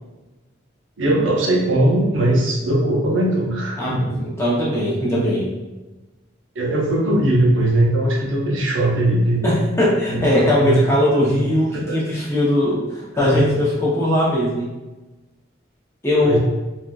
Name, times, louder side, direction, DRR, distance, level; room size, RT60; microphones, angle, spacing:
voice 1, 1.0-4.3 6.5-9.5 10.1-10.8 11.7-12.0 13.1-13.6 16.2-16.4, right 1 dB, 90° right, -2 dB, 0.7 m, -20 dB
voice 2, 3.8-5.5 9.4-14.7 16.0-16.4, left 1 dB, 15° left, -6 dB, 0.7 m, -19 dB
3.5 x 2.6 x 2.3 m, 1.1 s
head